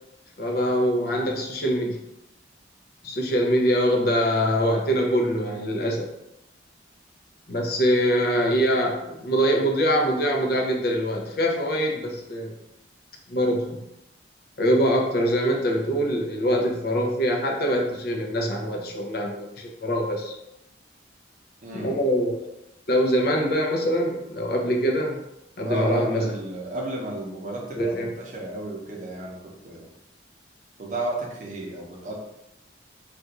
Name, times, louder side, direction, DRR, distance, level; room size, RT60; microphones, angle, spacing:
voice 1, 0.4-2.0 3.0-6.1 7.5-12.5 13.3-13.8 14.6-20.3 21.7-22.5 22.9-25.2 25.6-26.3 27.8-28.1, equal, 55° left, 1 dB, 0.6 m, -23 dB
voice 2, 21.6-22.0 25.6-29.9 30.8-32.1, right 1 dB, 40° right, -1 dB, 0.7 m, -32 dB
2.5 x 2.4 x 4.0 m, 0.85 s
head